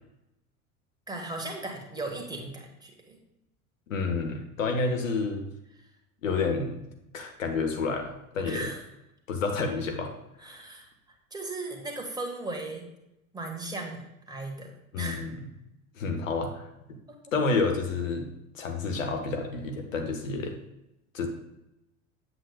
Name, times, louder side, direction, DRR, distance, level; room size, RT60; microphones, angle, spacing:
voice 1, 1.1-3.2 5.7-5.9 8.5-8.8 10.4-12.9 13.3-15.2 17.1-17.2, right 2 dB, 10° right, 1 dB, 1.6 m, -37 dB
voice 2, 3.9-5.4 6.2-6.8 7.1-8.7 9.3-10.1 10.4-10.6 14.9-15.4 16.0-16.6 17.3-18.3 18.5-20.6 21.1-21.3, left 4 dB, 70° left, 4 dB, 1.1 m, -29 dB
7.8 x 7.8 x 2.3 m, 0.87 s
figure-of-eight pair, 80°, 41 cm